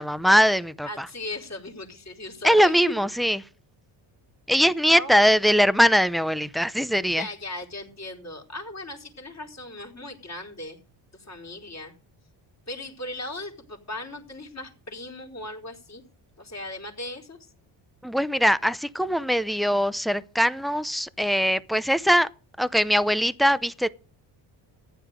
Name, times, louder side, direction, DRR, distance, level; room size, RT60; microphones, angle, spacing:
voice 1, 0.0-1.1 2.4-3.4 4.5-7.3 18.0-22.3 22.6-23.9, equal, ahead, 0.6 m, -21 dB
voice 2, 0.8-2.7 4.9-5.3 7.2-10.8 11.1-11.9 12.7-16.0 16.4-17.5, left 2 dB, 30° left, 4.3 m, -38 dB
14.5 x 9.8 x 5.1 m
cardioid pair, 95°, 49 cm